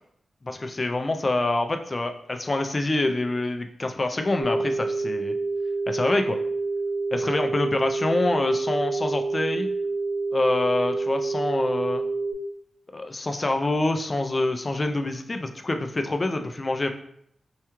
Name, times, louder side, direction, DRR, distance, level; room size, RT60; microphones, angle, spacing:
voice 1, 0.4-5.4 5.9-6.4 7.1-9.7 10.3-12.1 12.9-16.9, left 2 dB, 30° left, 6 dB, 0.3 m, -26 dB
sound 1, 4.4-12.3, right 3 dB, 80° right, 0.8 m, -27 dB
4.6 x 2.2 x 2.9 m, 0.71 s
wide cardioid pair, 135°, 0 cm